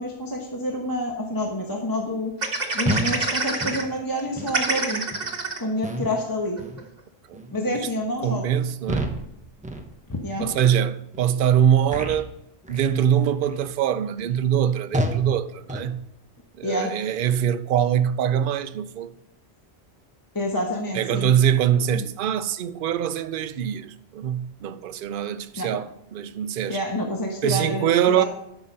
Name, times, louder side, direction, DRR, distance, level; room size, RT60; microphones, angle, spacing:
voice 1, 0.0-2.3 2.7-5.0 5.6-6.6 7.5-8.4 10.1-10.5 16.6-16.9 20.3-21.3 21.9-22.0 25.6-25.7 26.7-27.9 28.1-28.2, left 1 dB, 20° left, 1.1 m, -28 dB
sound 1, 2.4-3.8 4.2-4.3 4.5-5.6 6.2-6.3 6.6-6.8, right 3 dB, 45° right, 1.4 m, -26 dB
sound 2, 2.8-3.2 3.6-3.8 4.4-4.6 5.1-5.3 5.8-6.2 6.6-6.9 7.3-7.6 8.1-8.3 8.8-9.3 9.6-9.9 10.4-10.6 11.1-11.3 11.9-12.3 12.6-12.9 13.4-13.7 14.2-14.3 14.9-15.3 15.7-15.9, right 1 dB, 10° right, 0.8 m, -29 dB
voice 2, 7.3-7.9 8.2-9.2 10.4-12.3 12.7-16.1 16.6-19.1 20.9-26.8 27.4-28.2, right 9 dB, 60° right, 0.7 m, -23 dB
12.5 x 6.1 x 5.3 m
omnidirectional pair, 1.1 m